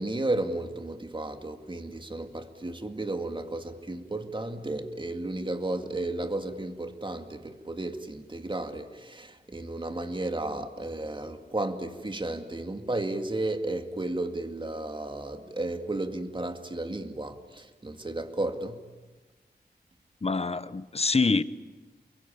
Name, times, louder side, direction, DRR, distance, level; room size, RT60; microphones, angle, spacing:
voice 1, 0.0-18.8, right 2 dB, 30° right, 2.2 m, -33 dB
voice 2, 20.2-21.4, left 4 dB, 35° left, 0.9 m, -25 dB
30.0 x 22.0 x 8.7 m
wide cardioid pair, 85°, 17 cm